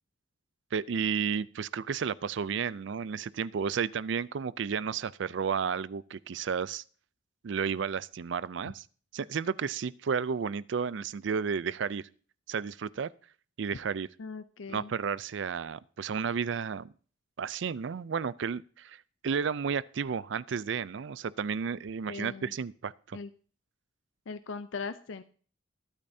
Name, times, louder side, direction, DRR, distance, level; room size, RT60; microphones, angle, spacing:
voice 1, 0.7-6.8 7.4-8.8 9.1-12.1 12.5-13.1 13.6-14.1 14.7-16.9 17.4-23.2, right 6 dB, 70° right, 20 dB, 0.4 m, -32 dB
voice 2, 14.2-14.9 22.1-22.5 23.1-23.3 24.3-25.2, left 4 dB, 75° left, 11 dB, 0.5 m, -39 dB
21.5 x 8.8 x 2.7 m, 0.42 s
head